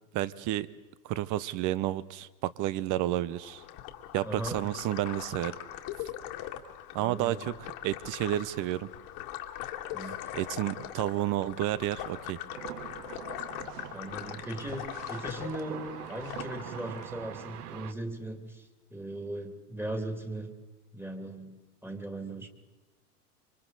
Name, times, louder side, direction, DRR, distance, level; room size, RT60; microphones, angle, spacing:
voice 1, 0.1-0.7 1.0-3.6 4.1-5.5 6.9-8.9 10.3-12.4, right 14 dB, 40° right, 18 dB, 0.9 m, -31 dB
sound 1, 3.3-17.1, left 12 dB, 55° left, 2.1 m, -41 dB
voice 2, 4.2-4.7 7.0-7.5 9.9-10.2 13.9-20.5 20.9-21.6 21.8-22.5, right 1 dB, 5° right, 5 dB, 2.3 m, -38 dB
sound 2, 12.5-17.9, right 10 dB, 75° right, 1.2 m, -43 dB
27.0 x 24.5 x 4.0 m, 1.2 s
hypercardioid pair, 100°, 47 cm